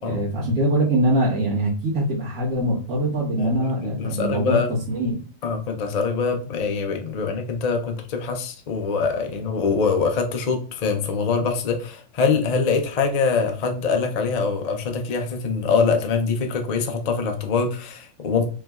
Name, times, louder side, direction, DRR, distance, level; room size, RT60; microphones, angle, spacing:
voice 1, 0.0-4.6 4.9-5.2, right 1 dB, 80° right, -6 dB, 1.7 m, -23 dB
voice 2, 3.4-4.7 5.4-18.5, left 5 dB, 60° left, 4 dB, 0.4 m, -24 dB
4.9 x 3.1 x 2.3 m, 0.39 s
omnidirectional pair, 1.5 m